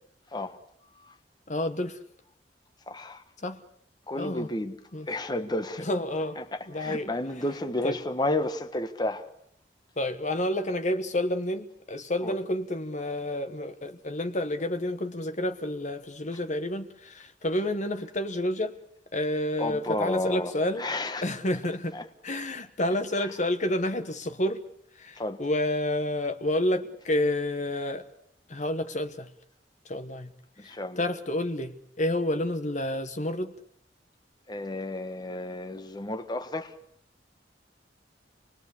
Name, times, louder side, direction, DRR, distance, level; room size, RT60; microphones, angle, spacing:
voice 1, 1.5-2.0 3.4-3.6 4.1-4.5 4.9-5.1 5.8-6.4 6.7-7.1 7.8-8.0 10.0-18.8 19.1-20.8 21.2-22.0 22.2-24.6 25.0-28.0 28.5-29.3 29.8-30.3 30.6-33.5, left 1 dB, 40° left, 1.4 m, -29 dB
voice 2, 2.9-3.2 4.1-4.8 5.1-5.9 6.4-9.3 12.2-12.3 19.6-20.5 20.8-21.3 21.9-22.1 25.2-25.4 30.6-31.0 34.5-36.7, left 1 dB, 25° left, 1.4 m, -31 dB
27.5 x 20.5 x 8.3 m
head